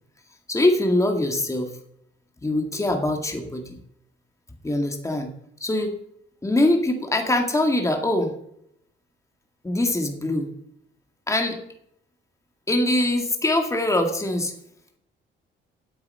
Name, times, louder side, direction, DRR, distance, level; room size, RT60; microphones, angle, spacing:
voice 1, 0.5-1.7 2.4-3.8 4.6-5.3 5.6-5.9 6.4-8.4 9.6-10.5 11.3-11.6 12.7-14.5, left 1 dB, 15° left, 4 dB, 2.0 m, -23 dB
8.7 x 8.7 x 6.6 m, 0.73 s
cardioid pair, 90°, 20 cm